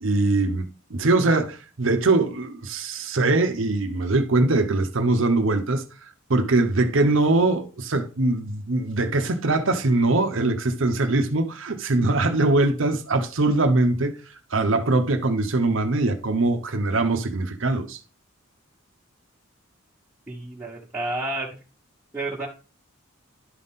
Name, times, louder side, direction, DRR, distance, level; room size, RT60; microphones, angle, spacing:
voice 1, 0.0-14.2 14.5-18.0, right 2 dB, 65° right, 0.8 m, -22 dB
voice 2, 20.3-21.6 22.1-22.5, right 2 dB, 10° right, 1.3 m, -30 dB
11.5 x 4.0 x 3.7 m
head